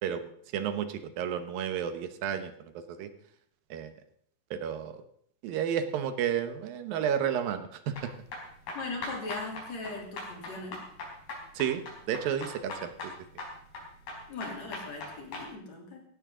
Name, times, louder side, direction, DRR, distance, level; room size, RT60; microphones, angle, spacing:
voice 1, 0.5-2.5 2.9-3.1 3.7-3.9 4.5-5.0 5.4-8.1 11.5-13.1, right 8 dB, 80° right, 9 dB, 2.8 m, -31 dB
sound 1, 7.9-15.5, left 2 dB, 90° left, 6.4 m, -41 dB
voice 2, 8.7-10.9 14.3-16.0, left 3 dB, 50° left, 0 dB, 4.2 m, -39 dB
16.5 x 16.0 x 3.8 m, 0.66 s
omnidirectional pair, 4.1 m